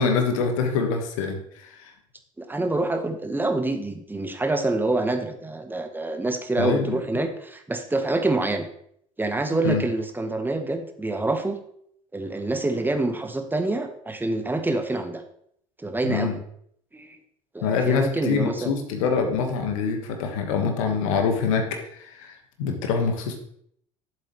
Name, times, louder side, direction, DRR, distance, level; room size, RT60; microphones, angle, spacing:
voice 1, 0.0-1.9 6.6-6.9 9.6-9.8 16.0-16.3 17.6-21.7 21.9-23.4, left 5 dB, 70° left, 4 dB, 1.4 m, -25 dB
voice 2, 2.4-8.7 9.2-11.6 12.1-15.2 15.8-16.4 16.9-17.2 17.5-18.7, right 2 dB, 10° right, 7 dB, 1.2 m, -26 dB
11.5 x 7.6 x 3.1 m, 0.69 s
figure-of-eight pair, 60°, 18 cm